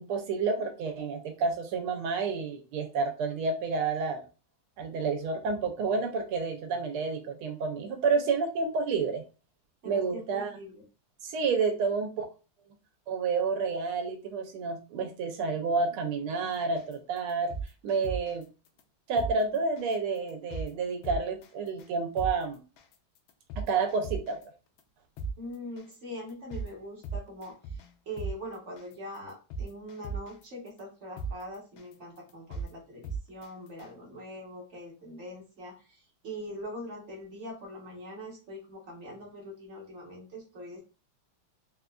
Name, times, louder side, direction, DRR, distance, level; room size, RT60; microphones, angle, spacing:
voice 1, 0.0-4.3 4.8-9.2 9.9-10.5 11.2-12.2 13.1-17.5 17.8-18.4 19.1-22.6 23.6-24.4, right 4 dB, 85° right, 5 dB, 1.5 m, -29 dB
voice 2, 9.8-10.8 25.4-40.8, equal, 50° right, -2 dB, 0.9 m, -42 dB
sound 1, 16.8-16.9 17.3-18.4 18.8-18.9 19.2-19.3 19.8-19.9 20.3-20.7 21.0-21.5 21.8-21.9 22.2-22.3 22.8-22.9 23.3-24.4 24.8-24.9 25.2-25.3 25.8-25.9 26.3-26.7 27.0-27.9 28.2-28.3 28.8-28.9 29.3-30.4 30.8-30.9 31.2-31.3 31.8-31.9 32.3-32.7 33.0-33.5 33.8-33.9, right 4 dB, 75° left, 1.3 m, -35 dB
4.0 x 2.4 x 2.2 m, 0.32 s
omnidirectional pair, 2.4 m